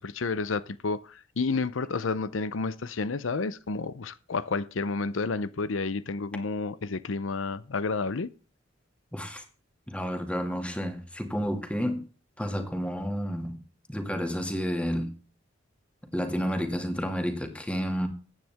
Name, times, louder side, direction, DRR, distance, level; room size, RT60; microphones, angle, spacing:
voice 1, 0.0-8.3, left 4 dB, 85° left, 0.7 m, -30 dB
voice 2, 9.1-9.4 9.9-12.0 12.4-13.6 13.9-15.1 16.1-18.1, equal, 5° left, 2.1 m, -30 dB
15.5 x 9.3 x 3.5 m
head